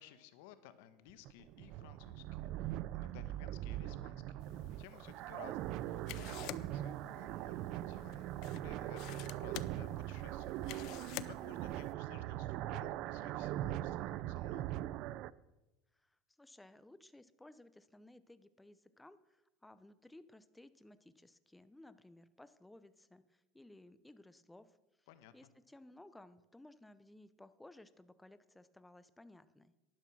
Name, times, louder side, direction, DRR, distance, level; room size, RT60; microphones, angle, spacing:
voice 1, 0.0-11.0 11.2-14.6 25.1-25.5, left 11 dB, 75° left, 12 dB, 1.2 m, -58 dB
sound 1, 1.1-15.3, right 14 dB, 55° right, 0.4 m, -41 dB
sound 2, 4.4-11.9, left 16 dB, 60° left, 0.6 m, -51 dB
voice 2, 15.9-25.1 25.3-29.7, left 1 dB, 5° left, 13 dB, 0.7 m, -59 dB
12.0 x 11.0 x 6.2 m, 0.99 s
supercardioid pair, 140°, 0 cm